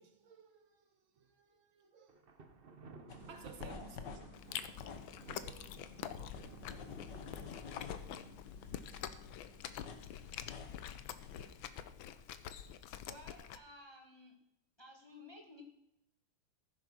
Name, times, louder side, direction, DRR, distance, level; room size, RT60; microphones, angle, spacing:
voice 1, 0.0-2.2 3.1-4.2 4.6-4.8 5.2-5.6, right 5 dB, 70° right, 2.1 m, -58 dB
Thunder, 2.1-9.3, right 4 dB, 40° right, 0.9 m, -56 dB
sound 1, 3.1-11.7, left 6 dB, 60° left, 1.7 m, -51 dB
voice 2, 3.6-3.9 13.0-14.4 14.8-15.6, left 1 dB, 15° left, 1.6 m, -54 dB
Chewing mastication, 4.3-13.6, left 10 dB, 75° left, 1.5 m, -46 dB
14.5 x 7.8 x 6.1 m
omnidirectional pair, 2.3 m